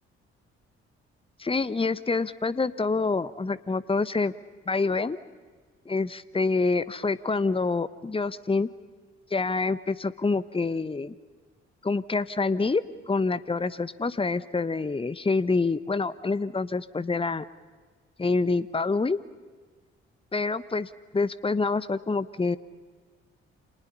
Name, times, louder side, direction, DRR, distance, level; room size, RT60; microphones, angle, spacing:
voice 1, 1.4-4.3 4.7-5.2 5.9-8.7 9.3-11.1 11.8-12.8 13.1-17.5 18.2-19.2 20.3-22.6, left 3 dB, 15° left, 17 dB, 1.1 m, -26 dB
30.0 x 27.5 x 5.6 m, 1.4 s
figure-of-eight pair, 40°, 32 cm